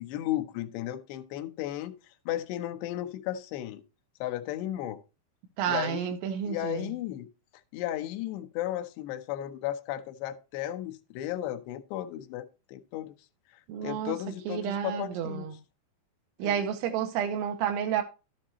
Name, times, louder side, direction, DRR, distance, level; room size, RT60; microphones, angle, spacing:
voice 1, 0.0-1.9 2.3-3.8 4.2-5.0 5.7-6.1 6.4-7.3 7.7-13.1 13.8-15.5 16.4-16.6, left 13 dB, 75° left, 2.8 m, -34 dB
voice 2, 5.6-6.9 13.7-14.2 14.5-15.6 16.4-18.0, right 9 dB, 85° right, 3.2 m, -30 dB
13.0 x 7.6 x 2.8 m
omnidirectional pair, 5.3 m